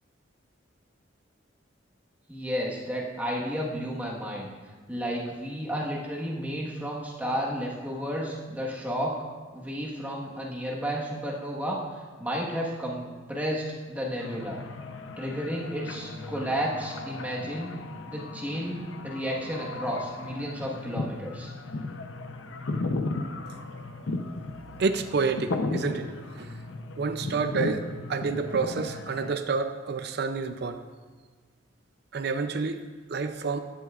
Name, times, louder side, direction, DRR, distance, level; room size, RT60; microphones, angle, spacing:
voice 1, 2.3-4.5 4.9-9.2 9.5-11.8 12.2-14.6 15.2-17.8 18.0-21.5, equal, 10° right, -4 dB, 1.4 m, -32 dB
sound 1, 14.2-29.4, left 2 dB, 80° left, 0.8 m, -36 dB
voice 2, 24.8-26.1 26.4-26.5 27.0-30.8 32.1-32.8 33.1-33.6, right 4 dB, 55° right, 8 dB, 0.5 m, -29 dB
15.0 x 11.0 x 2.5 m, 1.4 s
head